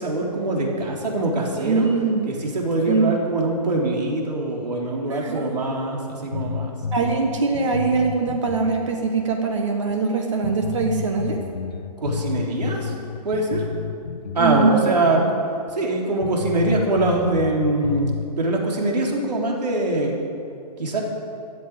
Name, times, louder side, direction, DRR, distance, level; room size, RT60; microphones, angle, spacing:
voice 1, 0.0-1.9 2.3-6.7 7.0-7.1 12.0-12.9 13.2-13.6 14.3-15.2 15.7-18.1 18.4-20.2 20.8-21.0, right 2 dB, 75° right, -1 dB, 3.8 m, -23 dB
voice 2, 1.6-2.2 2.9-3.1 5.1-5.6 6.9-11.4 14.4-14.8 15.2-15.3, right 4 dB, 45° right, 3 dB, 1.5 m, -22 dB
sound 1, 6.3-8.9 9.2-9.3 9.9-10.0 10.4-14.7 15.0-15.1 15.7-15.8 16.2-18.3, left 6 dB, 75° left, 1.2 m, -31 dB
13.5 x 8.1 x 9.7 m, 2.5 s
hypercardioid pair, 165°, 21 cm